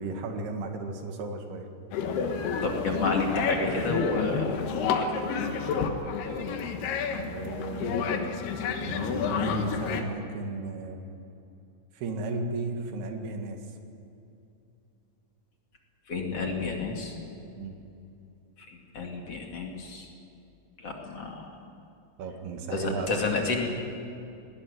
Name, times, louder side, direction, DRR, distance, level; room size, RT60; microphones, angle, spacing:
voice 1, 0.0-1.7 7.3-8.1 8.8-11.0 11.9-13.6 17.6-17.8 22.2-23.1, right 3 dB, 90° right, 4 dB, 4.0 m, -34 dB
sound 1, 1.9-10.0, left 5 dB, 85° left, 3.5 m, -29 dB
voice 2, 2.6-5.2 16.1-17.2 18.7-20.1 20.8-21.5 22.7-23.7, left 3 dB, 45° left, 1 dB, 3.2 m, -31 dB
20.0 x 19.0 x 9.9 m, 2.7 s
omnidirectional pair, 4.4 m